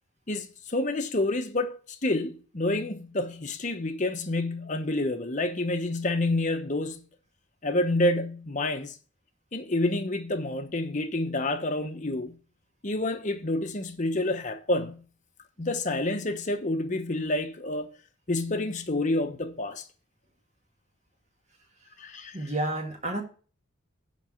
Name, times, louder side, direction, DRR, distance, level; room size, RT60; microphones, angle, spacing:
voice 1, 0.3-7.0 7.6-9.0 9.5-12.4 12.8-15.0 15.6-17.9 18.3-19.8 22.0-22.4, left 2 dB, 35° left, 1.0 m, -28 dB
voice 2, 22.3-23.2, right 1 dB, 35° right, 1.9 m, -30 dB
10.5 x 4.2 x 7.7 m
head